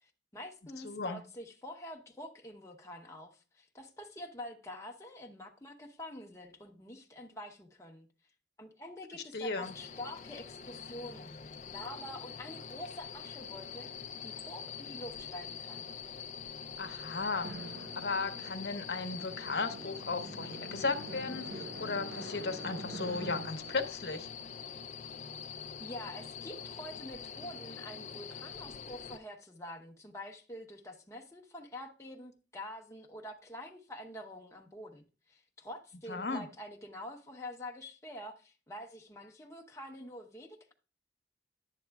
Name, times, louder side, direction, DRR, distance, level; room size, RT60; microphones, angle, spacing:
voice 1, 0.0-8.1 8.6-13.9 14.2-15.9 25.8-40.7, left 1 dB, 15° left, 0.8 m, -46 dB
voice 2, 0.8-1.2 9.3-9.7 16.8-17.5 17.8-24.3 36.1-36.4, left 3 dB, 65° left, 0.9 m, -36 dB
sound 1, 9.6-29.2, left 6 dB, 40° left, 0.4 m, -45 dB
Drum, 17.4-25.7, right 1 dB, 75° right, 1.1 m, -46 dB
10.5 x 8.4 x 2.3 m
head